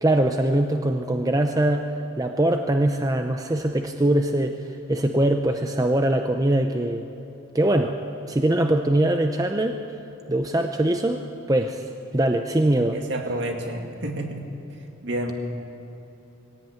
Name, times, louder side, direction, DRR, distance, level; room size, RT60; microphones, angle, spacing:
voice 1, 0.0-1.9 2.2-4.6 4.9-7.1 7.5-7.9 8.3-9.8 10.3-13.0, right 1 dB, 15° right, 5 dB, 0.6 m, -22 dB
voice 2, 12.9-14.5 15.0-15.3, right 1 dB, 55° right, 3 dB, 2.2 m, -29 dB
20.0 x 16.0 x 9.1 m, 2.9 s
head